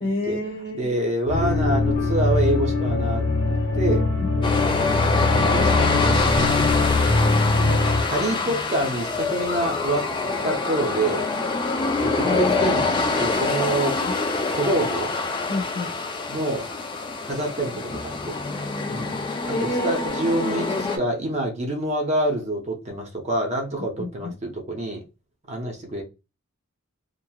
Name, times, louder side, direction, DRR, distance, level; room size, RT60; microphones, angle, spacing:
voice 1, 0.0-0.9 4.2-4.5 12.2-12.7 15.5-15.9 19.5-20.7 24.0-24.3, left 2 dB, 40° left, 1.0 m, -29 dB
voice 2, 0.7-4.1 5.5-6.7 8.1-10.1 10.4-11.3 12.0-12.9 13.2-14.0 14.5-15.1 16.3-16.7 17.2-18.4 18.9-19.2 19.6-25.0 25.5-26.0, right 1 dB, 30° right, 0.6 m, -26 dB
sound 1, 1.3-8.0, left 3 dB, 80° left, 1.4 m, -22 dB
sound 2, 4.4-21.0, left 3 dB, 20° left, 0.3 m, -25 dB
2.8 x 2.5 x 2.3 m
head